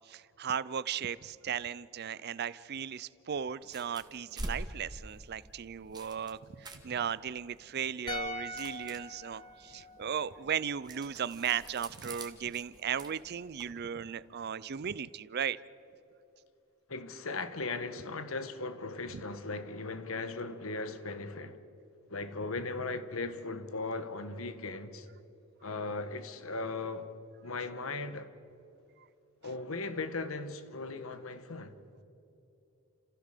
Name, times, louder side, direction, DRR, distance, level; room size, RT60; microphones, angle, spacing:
voice 1, 0.1-15.6 19.1-19.2, right 8 dB, 50° right, 0.5 m, -36 dB
sound 1, 3.6-13.7, right 1 dB, 20° right, 2.0 m, -48 dB
sound 2, 8.1-11.3 11.5-11.7, left 2 dB, 20° left, 1.8 m, -43 dB
voice 2, 16.9-21.6 22.1-25.1 25.6-27.1 27.4-28.3 29.4-31.8, left 3 dB, 85° left, 1.4 m, -38 dB
29.5 x 15.5 x 6.7 m
head